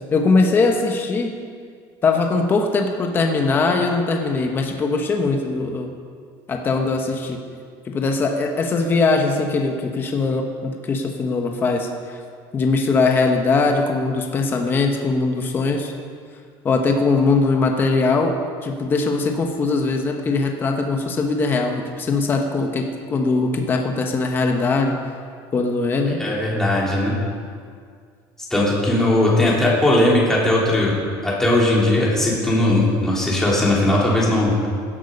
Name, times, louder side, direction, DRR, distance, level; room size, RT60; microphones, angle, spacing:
voice 1, 0.1-1.3 2.0-5.9 6.5-7.4 7.8-12.2 12.5-15.9 16.6-25.0 25.5-26.2, left 3 dB, 20° left, 3 dB, 1.2 m, -21 dB
voice 2, 26.2-27.1 28.5-34.5, left 1 dB, 5° left, -5 dB, 3.0 m, -18 dB
16.5 x 11.5 x 5.3 m, 2.1 s
cardioid pair, 170°, 10 cm